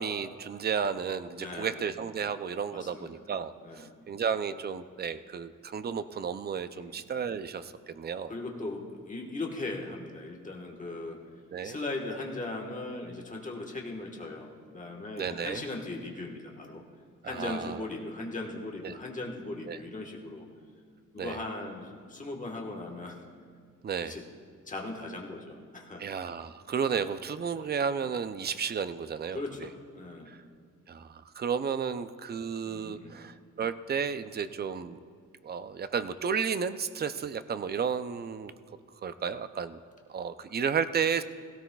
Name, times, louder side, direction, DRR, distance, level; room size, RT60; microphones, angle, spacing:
voice 1, 0.0-8.3 11.5-11.8 15.2-15.6 17.2-17.8 18.8-19.0 19.7-19.8 21.2-21.4 23.8-24.2 26.0-29.7 30.3-30.4 30.9-35.0 35.4-38.5 39.0-39.8 40.1-41.2, right 6 dB, 30° right, 12 dB, 0.4 m, -33 dB
voice 2, 1.4-1.8 2.7-3.1 3.6-3.9 6.7-7.0 8.3-11.2 11.6-16.8 17.2-20.5 21.1-23.2 24.0-24.2 24.7-26.0 29.3-30.3 32.6-33.2, left 2 dB, 25° left, 0 dB, 1.3 m, -38 dB
17.0 x 16.5 x 2.3 m, 2.1 s
wide cardioid pair, 155°, 33 cm